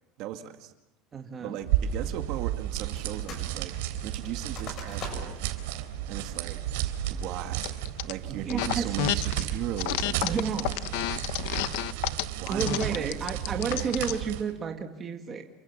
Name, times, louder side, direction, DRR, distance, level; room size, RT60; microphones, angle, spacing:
voice 1, 0.2-0.7 1.4-5.4 6.1-6.6 7.1-7.8 8.0-10.4 12.3-13.1 13.5-13.9, right 12 dB, 45° right, 6 dB, 2.2 m, -37 dB
voice 2, 1.1-1.6 8.3-9.0 9.3-9.4 10.2-10.7 12.5-15.4, right 6 dB, 20° right, 4 dB, 2.0 m, -31 dB
sound 1, 1.6-14.5, right 12 dB, 80° right, 3.7 m, -33 dB
sound 2, 3.0-3.5 3.8-5.5 6.0-6.1 6.6-7.0 7.5-7.9, left 4 dB, 30° left, 6.8 m, -42 dB
sound 3, 7.6-8.1 8.5-9.4 9.8-14.2, left 15 dB, 60° left, 1.1 m, -30 dB
29.5 x 24.0 x 7.4 m, 0.82 s
cardioid pair, 180°, 0 cm